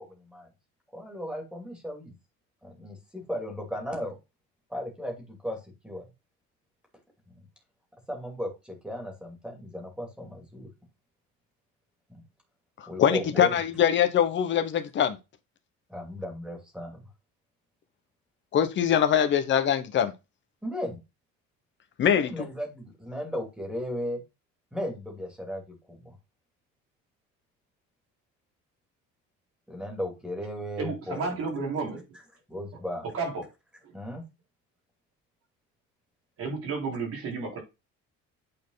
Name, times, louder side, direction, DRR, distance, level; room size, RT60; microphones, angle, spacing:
voice 1, 0.1-0.5 0.9-2.1 2.6-4.2 4.7-6.0 8.1-10.7 12.1-12.2 12.9-13.6 15.9-17.1 20.6-21.0 22.2-24.2 24.7-26.1 29.7-31.3 32.5-33.1 33.9-34.2, equal, 5° right, 2.7 m, -36 dB
voice 2, 13.0-15.2 18.5-20.1 22.0-22.3, left 9 dB, 40° left, 1.1 m, -23 dB
voice 3, 30.8-32.0 32.7-32.8 33.1-33.5 36.4-37.6, right 4 dB, 50° right, 4.2 m, -32 dB
8.7 x 4.6 x 4.0 m
cardioid pair, 160°, 29 cm